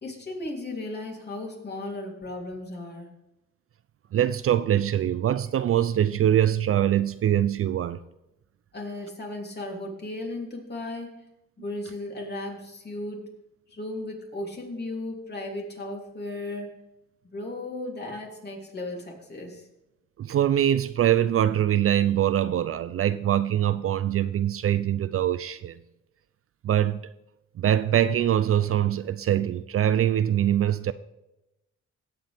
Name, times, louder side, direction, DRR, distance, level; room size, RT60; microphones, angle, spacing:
voice 1, 0.0-3.1 8.7-11.2 11.6-13.3 13.7-16.8 17.3-19.7, left 2 dB, 35° left, 3.2 m, -35 dB
voice 2, 4.1-8.0 20.2-25.8 26.6-27.0 27.6-30.9, right 11 dB, 50° right, 0.4 m, -23 dB
16.5 x 7.7 x 3.5 m
cardioid pair, 90°, 30 cm